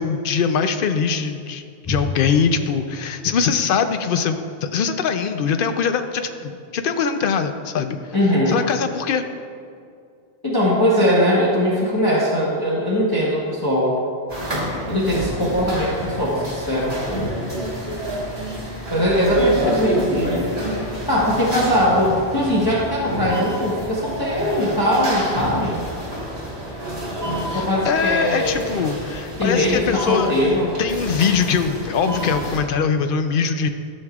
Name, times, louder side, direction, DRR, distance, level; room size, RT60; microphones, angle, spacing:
voice 1, 0.0-1.6 1.9-8.0 8.5-9.2 27.5-30.3 30.8-33.7, left 6 dB, 60° left, 8 dB, 0.7 m, -22 dB
voice 2, 8.1-8.6 10.4-14.0 14.9-17.0 18.9-20.7 21.1-25.8 27.4-28.8 29.4-30.7, equal, 20° left, -7 dB, 1.2 m, -20 dB
sound 1, 14.3-32.6, equal, 35° right, 1.7 m, -28 dB
13.0 x 6.6 x 2.4 m, 2.4 s
omnidirectional pair, 1.1 m